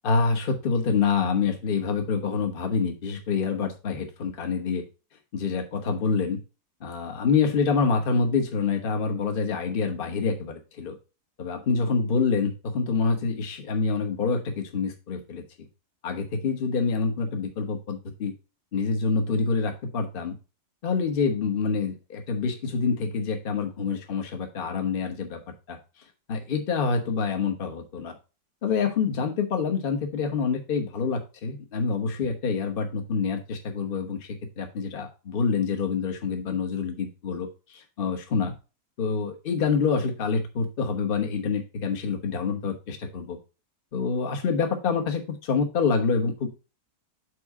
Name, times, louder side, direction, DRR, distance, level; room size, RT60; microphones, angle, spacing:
voice 1, 0.0-4.8 5.3-6.4 6.8-11.0 11.4-15.4 16.0-18.3 18.7-20.3 20.8-25.4 25.7-25.8 26.3-28.1 28.6-34.2 34.6-38.5 39.0-43.4 43.9-46.5, left 5 dB, 35° left, 3 dB, 1.1 m, -26 dB
6.5 x 4.3 x 4.7 m, 0.31 s
omnidirectional pair, 1.9 m